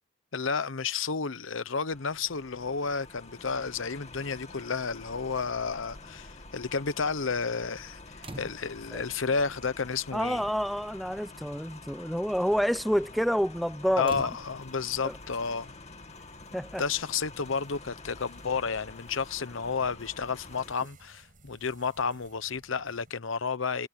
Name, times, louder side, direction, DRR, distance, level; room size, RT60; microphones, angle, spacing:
voice 1, 0.3-10.4 14.0-15.7 16.8-23.9, left 5 dB, 75° left, 0.9 m, -31 dB
sound 1, 1.9-20.7, left 3 dB, 35° left, 2.4 m, -48 dB
sound 2, 8.2-8.9 10.0-10.1 10.5-10.8 11.1-11.3 14.0-14.9 16.5-16.6, right 2 dB, 30° right, 1.1 m, -45 dB
voice 2, 10.1-14.1 15.0-15.2 16.5-16.8, equal, ahead, 0.7 m, -28 dB
sound 3, 10.4-23.1, right 2 dB, 45° right, 7.5 m, -62 dB
head